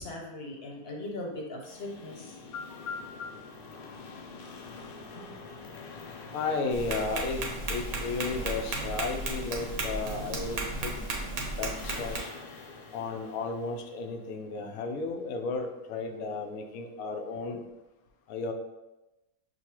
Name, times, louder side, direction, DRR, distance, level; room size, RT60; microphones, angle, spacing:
voice 1, 0.0-2.4 5.2-5.3, left 1 dB, 50° left, -1 dB, 1.0 m, -39 dB
sound 1, 1.6-14.5, left 4 dB, 70° left, 0.5 m, -46 dB
voice 2, 2.5-3.4 6.3-7.4 7.7-11.0 11.6-12.3 12.9-17.6 18.3-18.5, left 4 dB, 85° left, 4 dB, 1.1 m, -34 dB
Tap, 6.7-12.2, right 3 dB, 70° right, 1.2 m, -34 dB
6.5 x 2.3 x 2.9 m, 0.98 s
omnidirectional pair, 1.5 m